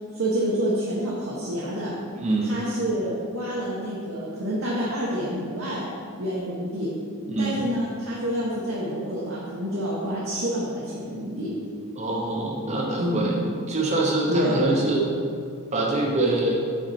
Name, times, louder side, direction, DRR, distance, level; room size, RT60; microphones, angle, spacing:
voice 1, 0.1-1.9 2.5-5.8 6.2-6.9 7.4-11.5 13.0-13.3 14.3-14.7, equal, 65° right, -6 dB, 1.0 m, -28 dB
voice 2, 2.2-2.5 7.3-7.7 12.0-13.3 13.7-15.0 15.7-16.6, right 2 dB, 30° right, -1 dB, 0.8 m, -24 dB
6.1 x 4.3 x 4.2 m, 2.3 s
head